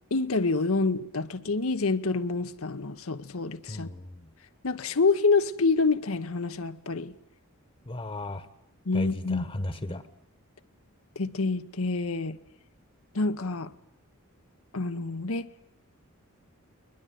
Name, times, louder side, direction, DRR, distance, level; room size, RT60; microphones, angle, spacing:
voice 1, 0.1-3.9 4.6-7.1 8.9-9.5 11.2-12.4 13.1-13.7 14.7-15.5, left 3 dB, 75° left, 0.9 m, -27 dB
voice 2, 3.7-4.2 7.9-8.4 8.9-10.0, left 1 dB, 25° left, 1.1 m, -35 dB
21.5 x 21.0 x 9.2 m
head